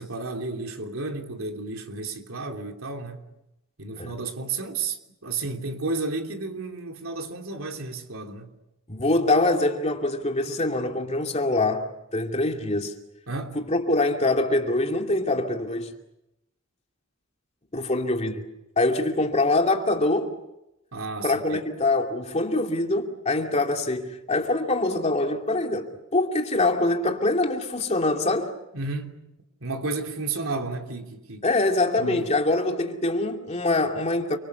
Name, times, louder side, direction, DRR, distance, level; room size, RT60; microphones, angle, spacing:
voice 1, 0.0-3.2 3.8-8.5 13.3-13.6 20.9-21.6 28.7-29.1 29.6-31.4 32.0-32.3, right 3 dB, 85° right, 3.2 m, -32 dB
voice 2, 8.9-13.0 13.6-15.9 17.7-18.4 18.8-20.4 21.2-28.5 31.4-34.4, left 2 dB, 30° left, 2.5 m, -24 dB
30.0 x 24.5 x 7.0 m
head